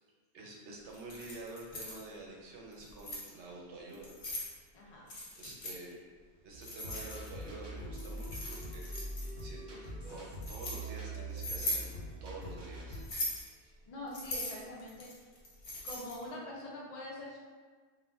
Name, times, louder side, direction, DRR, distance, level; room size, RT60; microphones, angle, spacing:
voice 1, 0.3-4.1 5.4-6.0 6.4-9.1 9.4-13.0 13.6-13.7, right 2 dB, 90° right, -2 dB, 0.9 m, -48 dB
Keys jangling, 0.9-2.0 2.7-3.3 3.9-4.5 5.1-5.8 6.6-7.5 7.9-9.4 10.1-10.8 11.4-11.9 12.9-13.5 14.1-16.2, left 1 dB, 75° left, 1.0 m, -40 dB
voice 2, 4.7-5.1 5.9-6.0 13.9-15.1 15.8-17.4, left 1 dB, 55° left, -5 dB, 0.4 m, -44 dB
sound 1, 6.5-13.0, right 1 dB, 55° right, 0.7 m, -43 dB
2.4 x 2.1 x 3.3 m, 1.5 s
omnidirectional pair, 1.1 m